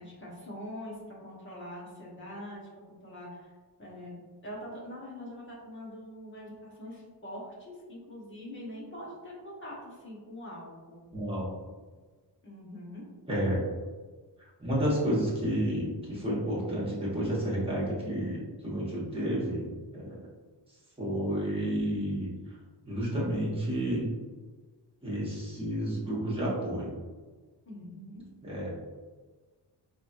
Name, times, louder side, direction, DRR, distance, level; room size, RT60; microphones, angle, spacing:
voice 1, 0.0-2.7 3.0-3.5 3.8-11.1 12.4-13.0 27.7-28.2, left 1 dB, 30° left, -5 dB, 1.1 m, -43 dB
voice 2, 11.1-11.5 13.3-13.6 14.6-20.2 21.0-22.3 22.8-24.1 25.0-26.9 28.4-28.7, equal, 15° right, -7 dB, 1.2 m, -30 dB
4.0 x 3.1 x 2.6 m, 1.4 s
wide cardioid pair, 175°, 43 cm